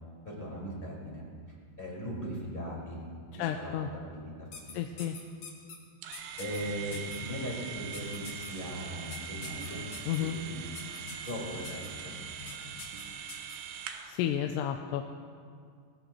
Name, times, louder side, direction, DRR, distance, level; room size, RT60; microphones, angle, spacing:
voice 1, 0.2-1.2 1.8-3.0 3.3-3.7 4.1-4.8 6.4-9.8 10.2-10.5 11.2-12.1, equal, 10° left, -5 dB, 5.2 m, -39 dB
voice 2, 3.4-3.9 4.7-5.2 10.1-10.4 14.0-15.1, left 10 dB, 85° left, 4 dB, 2.7 m, -32 dB
sound 1, 4.5-5.8 6.1-6.6 6.9-7.2 7.9-8.5 9.1-10.2 10.7-11.3 11.6-11.9 12.5-12.6 12.8-13.6, left 5 dB, 50° left, 2.5 m, -45 dB
sound 2, 6.0-14.2, right 7 dB, 75° right, 2.9 m, -42 dB
sound 3, 6.5-13.1, left 2 dB, 45° right, 4.4 m, -49 dB
23.0 x 20.0 x 3.2 m, 2.2 s
omnidirectional pair, 4.9 m